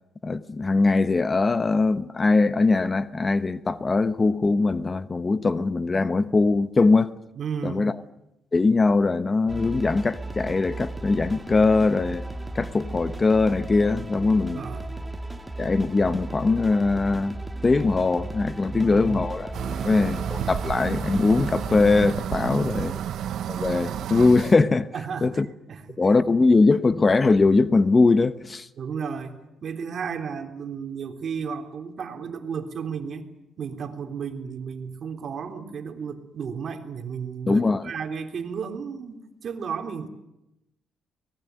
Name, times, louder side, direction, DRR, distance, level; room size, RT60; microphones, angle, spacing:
voice 1, 0.2-7.1 7.6-7.9 8.5-12.2 12.5-14.6 15.6-19.5 19.8-22.9 23.5-24.9 25.2-25.5 26.0-28.7 37.5-37.8, left 3 dB, 30° left, 0.9 m, -21 dB
voice 2, 7.4-7.9 14.5-14.8 18.7-19.3 19.6-20.0 22.4-23.1 24.9-25.4 25.7-26.0 28.8-33.3 33.6-40.1, right 6 dB, 55° right, 3.4 m, -34 dB
sound 1, 9.5-22.2, right 2 dB, 10° right, 1.8 m, -35 dB
sound 2, 19.5-24.6, right 10 dB, 75° right, 0.8 m, -31 dB
24.0 x 19.5 x 9.4 m
cardioid pair, 90°, 0 cm